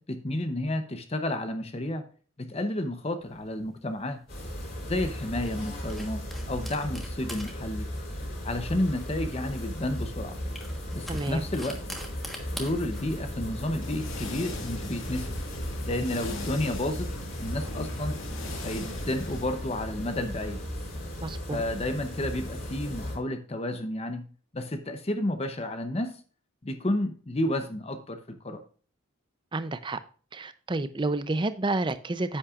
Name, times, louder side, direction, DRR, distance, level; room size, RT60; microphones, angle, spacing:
voice 1, 0.1-2.0 2.4-4.2 4.8-7.9 8.4-10.3 10.9-11.8 12.5-15.3 15.9-17.1 17.4-18.2 18.6-20.6 21.5-24.2 24.5-26.2 26.6-28.6, left 1 dB, 30° left, 8 dB, 0.7 m, -31 dB
sound 1, 3.2-15.9, equal, ahead, 1.2 m, -46 dB
sound 2, 4.3-23.2, equal, 45° left, 4.8 m, -36 dB
voice 2, 11.1-11.4 21.2-21.6 29.5-30.0 30.3-32.4, right 2 dB, 20° right, 12 dB, 0.5 m, -30 dB
sound 3, 13.8-19.4, left 2 dB, 65° left, 2.1 m, -40 dB
9.9 x 8.5 x 2.4 m, 0.40 s
head